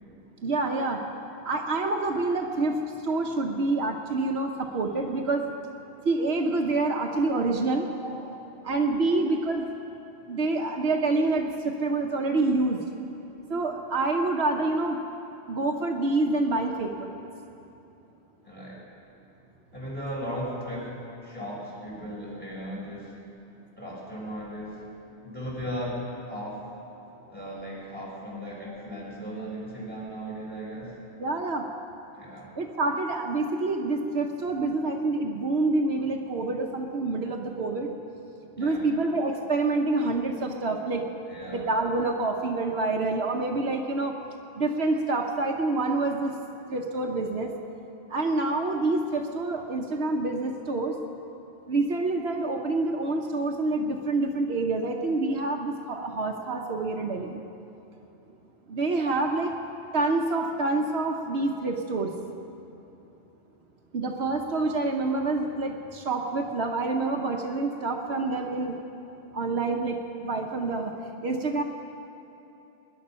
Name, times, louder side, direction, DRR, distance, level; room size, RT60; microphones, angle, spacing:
voice 1, 0.4-1.0 1.4-2.8 3.0-5.5 6.0-7.9 8.6-9.7 10.3-12.8 13.5-15.0 15.5-17.1 31.2-31.6 32.6-37.9 38.6-41.0 41.5-44.1 44.6-46.3 46.7-47.5 48.1-51.0 51.7-57.4 58.7-59.5 59.9-62.1 63.9-68.7 69.3-70.9 71.2-71.6, right 2 dB, 70° right, 3 dB, 1.1 m, -27 dB
voice 2, 7.7-8.3 9.0-9.2 18.4-18.8 19.7-21.0 21.2-23.1 23.8-24.9 25.2-26.6 27.3-30.9 32.2-32.5 38.6-38.9 41.3-41.7, equal, 10° left, -5 dB, 4.6 m, -37 dB
20.5 x 11.0 x 5.6 m, 3.0 s
omnidirectional pair, 1.1 m